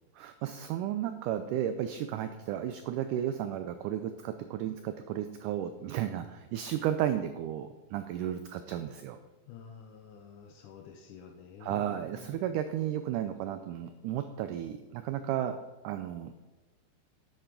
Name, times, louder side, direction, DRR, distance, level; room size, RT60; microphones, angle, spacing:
voice 1, 0.2-9.2 11.6-15.6 15.8-16.4, right 11 dB, 90° right, 9 dB, 1.8 m, -33 dB
voice 2, 9.5-12.4, left 6 dB, 75° left, 4 dB, 1.9 m, -49 dB
10.5 x 8.0 x 3.8 m, 1.2 s
omnidirectional pair, 4.2 m